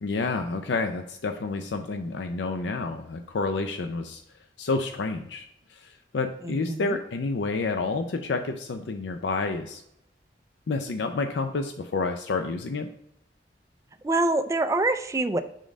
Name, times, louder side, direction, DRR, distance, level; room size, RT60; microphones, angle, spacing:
voice 1, 0.0-4.2 4.6-9.8 10.7-12.9, left 3 dB, 80° left, 6 dB, 0.5 m, -29 dB
voice 2, 6.4-7.0 14.0-15.4, right 2 dB, 20° right, 9 dB, 0.4 m, -25 dB
5.3 x 3.7 x 5.0 m, 0.78 s
head